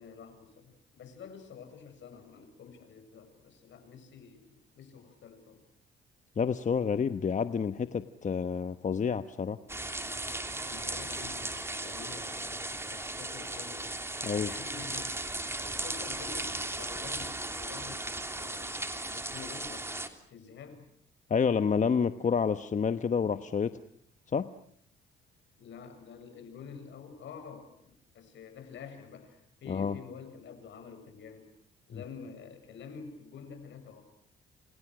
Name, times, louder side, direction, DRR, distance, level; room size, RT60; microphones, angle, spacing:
voice 1, 0.0-5.6 10.7-13.9 14.2-15.2 15.6-18.0 18.4-20.9 25.6-31.5 31.9-34.0, left 6 dB, 70° left, 8 dB, 7.5 m, -48 dB
voice 2, 6.4-9.6 14.2-14.5 21.3-23.8 24.3-24.5 29.7-30.0, left 6 dB, 40° left, 10 dB, 1.1 m, -29 dB
sound 1, 9.7-20.1, right 2 dB, 10° right, 3.1 m, -37 dB
29.0 x 28.5 x 6.4 m, 0.63 s
cardioid pair, 90°, 20 cm